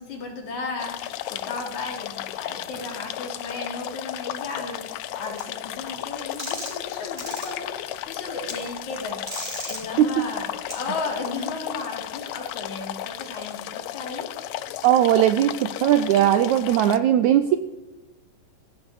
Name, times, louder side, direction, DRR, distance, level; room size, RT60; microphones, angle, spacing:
voice 1, 0.0-14.8, left 3 dB, 60° left, 2 dB, 4.0 m, -35 dB
sound 1, 0.8-17.0, left 13 dB, 90° left, 1.6 m, -34 dB
sound 2, 5.4-5.5 6.4-6.8 7.2-7.5 8.5-8.6 9.2-9.8 10.7-10.8, right 1 dB, 15° right, 4.3 m, -34 dB
voice 2, 14.8-17.6, right 11 dB, 80° right, 10 dB, 1.7 m, -19 dB
17.0 x 15.0 x 4.9 m, 1.1 s
omnidirectional pair, 4.0 m